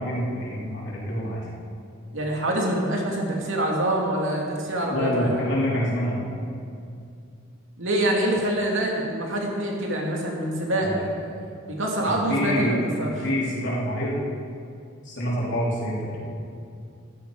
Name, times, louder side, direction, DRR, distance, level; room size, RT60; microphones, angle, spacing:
voice 1, 0.0-1.4 4.9-6.2 10.8-11.0 12.0-12.7 13.0-14.3 15.0-16.2, equal, 55° left, -6 dB, 4.0 m, -27 dB
voice 2, 2.1-5.4 7.8-11.4 11.7-13.1, right 1 dB, 65° right, -1 dB, 2.6 m, -25 dB
14.5 x 12.5 x 5.1 m, 2.5 s
head